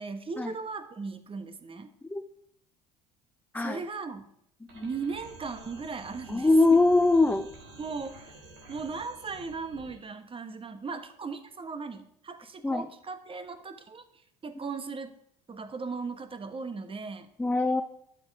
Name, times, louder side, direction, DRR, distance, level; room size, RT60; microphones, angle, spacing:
voice 1, 0.0-1.9 3.6-4.3 4.8-6.8 7.8-8.4 8.7-14.0 14.4-15.1 15.5-17.3, right 4 dB, 30° right, 10 dB, 1.4 m, -37 dB
sound 1, 4.7-10.0, right 2 dB, 65° right, 3.5 m, -50 dB
voice 2, 6.3-7.5 12.6-12.9 17.4-17.8, left 2 dB, 10° left, 8 dB, 0.7 m, -23 dB
12.0 x 7.8 x 4.8 m, 0.71 s
hypercardioid pair, 60°, 18 cm